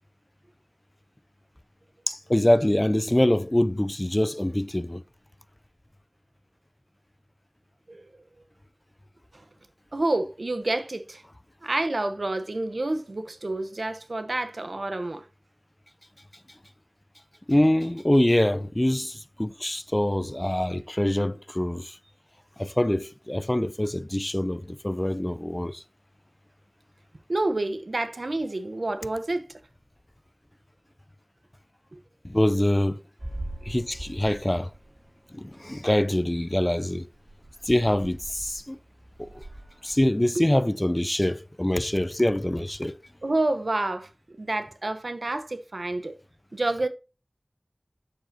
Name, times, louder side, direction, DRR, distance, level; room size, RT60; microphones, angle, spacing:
voice 1, 2.1-5.0 17.5-21.9 22.6-25.8 32.3-33.0 33.7-34.7 35.3-37.1 37.7-38.8 39.8-42.9, left 1 dB, 25° left, 0.5 m, -24 dB
voice 2, 9.9-11.2 11.6-15.3 27.3-29.5 31.9-32.0 40.3-40.4 43.2-46.2 46.5-46.9, right 2 dB, 90° right, 0.9 m, -28 dB
sound 1, 33.2-35.1 35.4-35.6 36.1-36.2 36.5-36.7 37.0-40.0, right 1 dB, 40° right, 1.2 m, -41 dB
8.5 x 7.1 x 2.8 m
wide cardioid pair, 45°, 0 cm